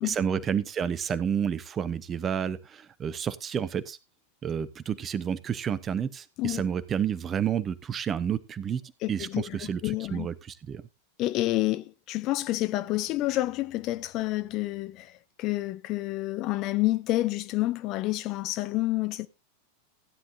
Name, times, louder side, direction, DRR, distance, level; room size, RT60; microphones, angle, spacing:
voice 1, 0.0-4.0 4.4-8.8 9.1-10.8, right 8 dB, 25° right, 0.9 m, -30 dB
voice 2, 9.0-10.3 11.2-19.3, left 17 dB, 40° left, 0.7 m, -29 dB
16.0 x 9.8 x 2.7 m
figure-of-eight pair, 90°, 0 cm